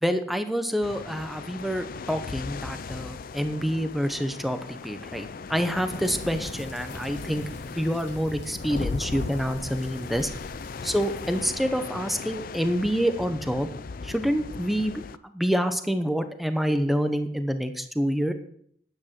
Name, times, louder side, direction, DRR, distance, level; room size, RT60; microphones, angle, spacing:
voice 1, 0.0-7.4 7.8-10.3 10.8-13.7 14.0-15.0 15.3-18.3, equal, ahead, 8 dB, 0.8 m, -27 dB
sound 1, 0.8-15.2, left 4 dB, 45° left, 0.4 m, -38 dB
sound 2, 5.9-11.5, left 1 dB, 70° left, 2.6 m, -43 dB
9.9 x 9.4 x 5.9 m, 0.66 s
head